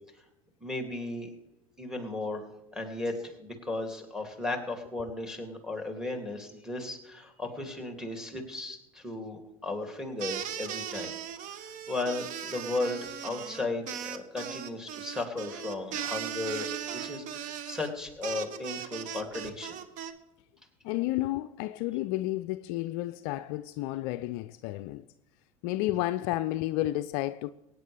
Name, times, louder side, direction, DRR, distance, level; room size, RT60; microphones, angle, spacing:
voice 1, 0.6-1.3 1.8-11.1 11.5-16.7 16.9-19.8, left 2 dB, 5° right, 2.7 m, -35 dB
sound 1, 10.2-20.1, right 9 dB, 45° right, 1.1 m, -38 dB
voice 2, 20.8-25.0 25.6-27.5, left 16 dB, 55° left, 0.4 m, -31 dB
23.0 x 9.3 x 3.4 m
figure-of-eight pair, 75°, 18 cm